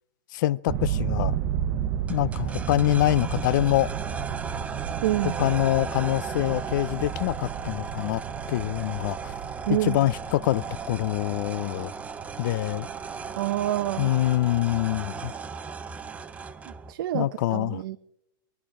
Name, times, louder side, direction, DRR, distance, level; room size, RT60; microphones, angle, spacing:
voice 1, 0.3-1.4 2.1-3.9 5.4-8.2 8.5-9.3 9.8-11.9 12.4-12.9 14.0-15.3 17.1-17.8, left 15 dB, 60° left, 0.5 m, -25 dB
sound 1, 0.7-14.3, right 9 dB, 35° right, 0.9 m, -33 dB
sound 2, 2.1-16.9, right 5 dB, 10° right, 0.6 m, -37 dB
voice 2, 5.0-5.4 9.7-10.1 13.4-14.2 15.2-15.3 16.7-18.0, right 14 dB, 75° right, 0.7 m, -28 dB
21.0 x 12.0 x 4.9 m
supercardioid pair, 150°, 12 cm